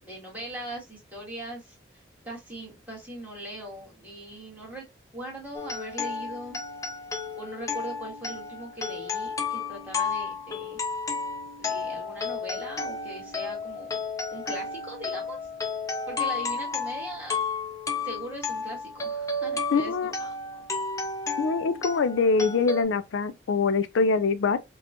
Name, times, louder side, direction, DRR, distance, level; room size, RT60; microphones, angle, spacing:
voice 1, 0.0-4.8 5.1-6.6 7.4-10.8 11.6-14.0 14.3-15.4 16.1-17.4 18.0-19.9 20.2-20.6, right 1 dB, 10° right, 1.7 m, -40 dB
sound 1, 5.6-22.8, left 4 dB, 15° left, 0.5 m, -32 dB
voice 2, 19.7-20.1 21.4-24.6, left 4 dB, 85° left, 0.4 m, -24 dB
5.0 x 2.3 x 2.7 m
head